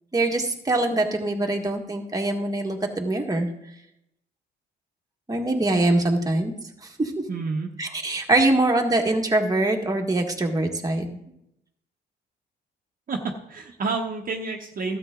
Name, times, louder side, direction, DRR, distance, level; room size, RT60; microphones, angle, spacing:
voice 1, 0.1-3.5 5.3-6.5 6.8-7.1 7.8-11.2, right 2 dB, 20° right, 1 dB, 1.7 m, -23 dB
voice 2, 7.3-7.7 13.1-13.2 13.5-15.0, right 4 dB, 45° right, 1 dB, 1.2 m, -29 dB
13.0 x 8.1 x 3.8 m, 0.79 s
cardioid pair, 90°, 20 cm